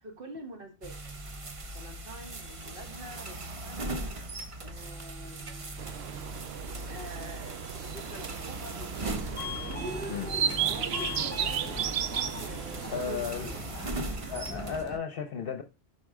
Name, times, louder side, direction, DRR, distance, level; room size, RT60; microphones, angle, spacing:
voice 1, 0.0-1.0 1.7-4.0 4.6-5.8 6.9-11.8 12.4-13.1, equal, 55° right, 1.9 m, -47 dB
sound 1, 0.8-14.8, right 2 dB, 35° right, 0.8 m, -39 dB
sound 2, 5.8-13.2, right 9 dB, 75° right, 0.8 m, -34 dB
Subway metro underground, 8.9-15.0, left 1 dB, 10° left, 2.1 m, -39 dB
voice 2, 12.9-13.5 14.3-15.6, left 6 dB, 60° left, 0.9 m, -34 dB
11.0 x 4.2 x 3.7 m
omnidirectional pair, 1.1 m